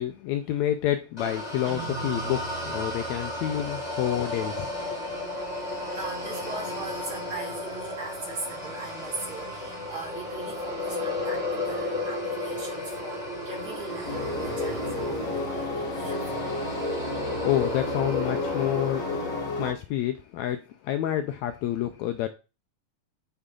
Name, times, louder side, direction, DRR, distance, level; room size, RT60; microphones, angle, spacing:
voice 1, 0.0-5.0 17.3-19.3 19.6-22.3, left 12 dB, 80° left, 1.7 m, -29 dB
sound 1, 1.2-19.4, left 2 dB, 20° left, 1.0 m, -33 dB
Guitar, 1.7-4.9, right 6 dB, 75° right, 2.3 m, -42 dB
voice 2, 5.5-16.5, right 3 dB, 45° right, 2.6 m, -40 dB
sound 2, 14.0-19.7, left 2 dB, 60° left, 0.8 m, -32 dB
8.0 x 3.4 x 3.7 m
omnidirectional pair, 3.5 m